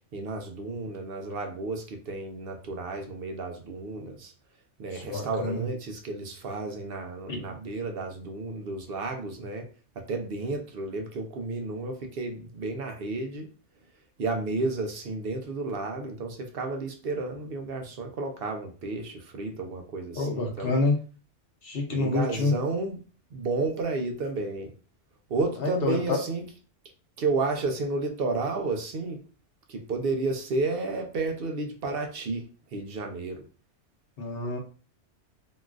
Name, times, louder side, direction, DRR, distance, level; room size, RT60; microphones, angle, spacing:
voice 1, 0.1-4.3 4.8-9.7 10.0-13.5 14.2-20.7 21.9-23.0 23.3-24.7 25.3-26.4 27.2-29.2 29.7-33.4 34.4-34.6, right 3 dB, 60° right, 4 dB, 0.7 m, -32 dB
voice 2, 4.9-5.6 7.3-7.4 20.2-21.0 21.6-22.5 25.6-26.2 34.2-34.6, left 3 dB, 55° left, 1 dB, 1.0 m, -27 dB
3.8 x 2.4 x 2.4 m, 0.37 s
omnidirectional pair, 1.3 m